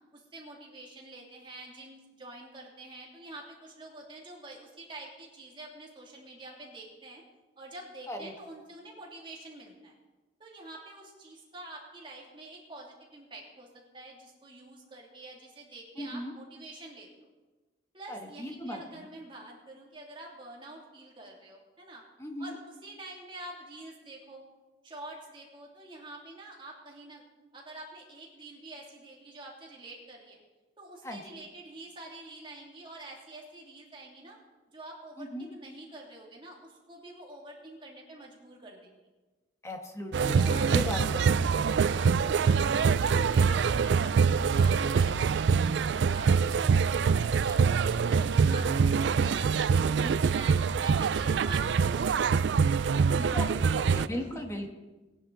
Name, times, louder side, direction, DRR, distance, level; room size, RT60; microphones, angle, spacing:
voice 1, 0.1-7.2 7.6-10.0 10.4-17.1 17.9-22.0 22.4-24.4 24.8-27.2 27.5-30.4 30.8-34.4 34.7-39.0 40.2-41.3 41.8-48.7 49.0-52.4 52.8-53.5 54.1-54.4, right 2 dB, 25° right, -2 dB, 2.6 m, -47 dB
voice 2, 16.0-16.3 18.1-19.0 22.2-22.5 31.0-31.2 35.2-35.5 39.6-41.4 49.9-50.1 53.1-53.4 53.8-54.7, equal, 15° left, 3 dB, 1.5 m, -37 dB
sound 1, 40.1-54.1, right 5 dB, 70° right, 0.4 m, -25 dB
19.0 x 10.5 x 3.9 m, 1.2 s
head